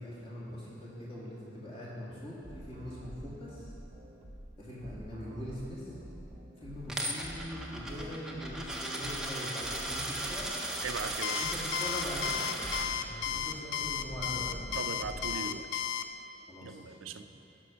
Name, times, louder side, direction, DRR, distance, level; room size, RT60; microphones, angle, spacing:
voice 1, 0.0-3.7 4.6-6.0 6.6-10.6 11.4-12.4 13.0-14.6 16.5-17.2, equal, 30° left, -7 dB, 2.0 m, -42 dB
sound 1, 2.4-15.3, right 1 dB, 35° right, 0.8 m, -47 dB
Coin (dropping), 6.9-12.9, right 1 dB, 5° right, 0.6 m, -37 dB
voice 2, 10.8-11.5 14.7-15.8 16.6-17.2, right 5 dB, 85° right, 9 dB, 0.5 m, -39 dB
Alarm, 11.2-16.0, left 9 dB, 65° left, 0.3 m, -33 dB
11.5 x 6.0 x 5.1 m, 2.9 s
head